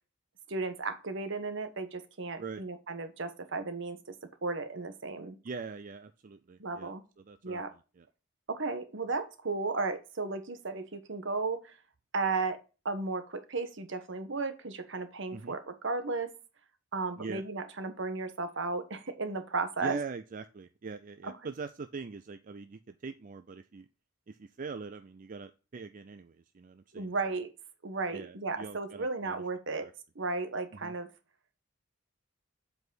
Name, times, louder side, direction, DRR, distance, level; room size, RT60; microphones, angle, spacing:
voice 1, 0.5-4.1 4.4-5.4 6.6-7.0 7.4-7.7 8.5-11.8 12.1-12.6 12.8-16.3 16.9-20.0 21.2-21.3 27.0-27.5 27.8-29.9 30.1-31.1, right 3 dB, 65° right, 1.2 m, -34 dB
voice 2, 5.4-6.9 7.2-8.1 15.3-15.6 17.2-17.4 19.8-23.9 24.3-27.1 28.1-29.4 29.8-29.9 30.8-30.9, right 4 dB, 40° right, 0.4 m, -42 dB
7.9 x 4.8 x 3.9 m
head